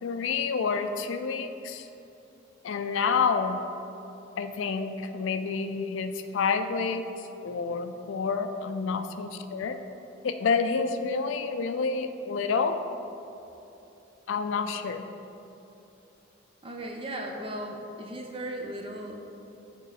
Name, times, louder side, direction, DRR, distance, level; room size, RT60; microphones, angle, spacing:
voice 1, 0.0-1.9 2.6-3.6 4.4-7.0 7.4-9.8 10.2-12.8 14.3-15.0, left 5 dB, 70° left, 8 dB, 0.4 m, -28 dB
voice 2, 16.6-19.2, right 1 dB, 25° right, 2 dB, 0.6 m, -37 dB
7.8 x 3.0 x 5.8 m, 2.9 s
head